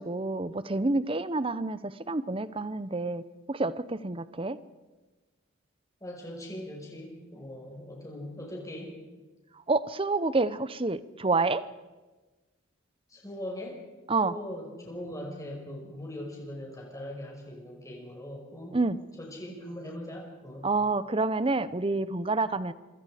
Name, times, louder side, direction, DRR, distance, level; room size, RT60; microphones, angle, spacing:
voice 1, 0.0-3.2 3.5-4.6 9.7-11.6 14.1-14.4 18.7-19.0 20.6-22.7, right 3 dB, 25° right, 15 dB, 0.7 m, -28 dB
voice 2, 6.0-8.9 13.1-13.8 14.2-18.8 19.2-20.7, left 1 dB, 15° left, -1 dB, 5.6 m, -40 dB
26.5 x 24.0 x 5.1 m, 1.2 s
head